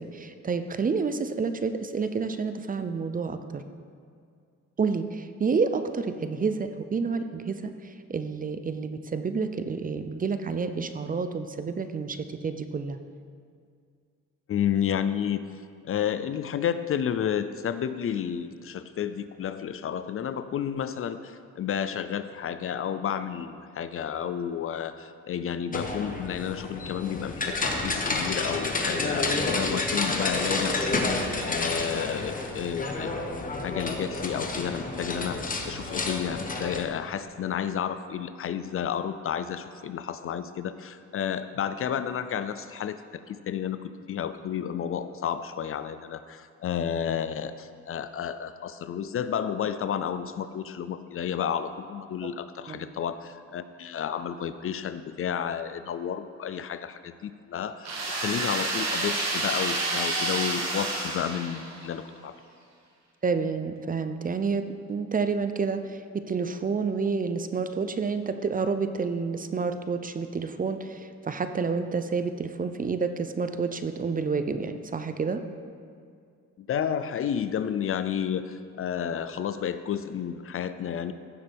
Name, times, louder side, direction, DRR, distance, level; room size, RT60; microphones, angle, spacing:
voice 1, 0.0-3.6 4.8-13.0 52.7-52.9 63.2-66.0 66.3-75.4, right 5 dB, 30° right, 9 dB, 0.6 m, -29 dB
voice 2, 14.5-33.2 33.6-43.0 43.3-62.4 76.6-81.1, left 8 dB, 45° left, 12 dB, 0.5 m, -31 dB
sound 1, 25.7-36.8, left 3 dB, 25° left, 1.1 m, -30 dB
sound 2, 57.8-61.9, right 2 dB, 60° right, 1.8 m, -29 dB
15.5 x 6.7 x 3.5 m, 2.2 s
cardioid pair, 90°, 30 cm